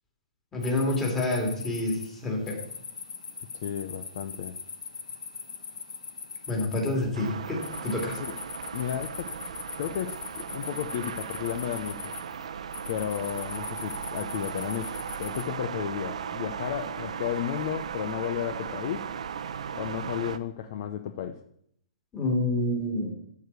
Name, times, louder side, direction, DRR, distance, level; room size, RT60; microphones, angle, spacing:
voice 1, 0.5-2.6 6.5-8.2 22.1-23.1, left 2 dB, 10° left, -1 dB, 2.4 m, -28 dB
sound 1, 0.6-15.4, left 5 dB, 85° left, 1.6 m, -41 dB
voice 2, 3.5-4.6 8.1-8.4 8.7-9.3 9.8-12.1 12.9-19.1 19.7-21.4, left 10 dB, 40° left, 8 dB, 0.7 m, -33 dB
sound 2, 7.1-20.4, right 7 dB, 70° right, 0.8 m, -37 dB
13.0 x 4.7 x 8.2 m, 0.69 s
hypercardioid pair, 165°, 4 cm